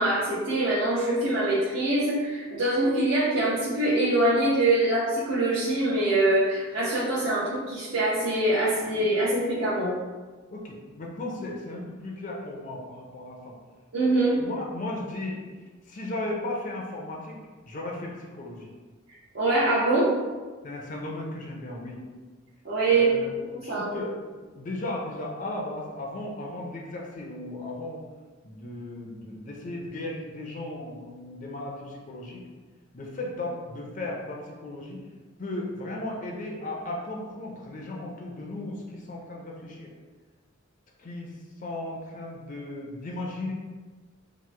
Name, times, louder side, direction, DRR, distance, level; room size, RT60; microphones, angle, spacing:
voice 1, 0.0-9.9 13.9-14.4 19.3-20.1 22.6-23.1 23.4-23.9, right 2 dB, 75° right, -10 dB, 0.6 m, -24 dB
voice 2, 10.5-13.5 14.0-15.4 15.9-17.4 17.7-18.7 20.6-22.0 22.8-23.3 23.6-24.2 24.5-28.0 28.4-32.4 32.9-35.0 35.4-39.9 41.0-41.3 41.6-43.5, left 2 dB, 40° left, -1 dB, 0.4 m, -36 dB
2.9 x 2.1 x 3.2 m, 1.4 s
head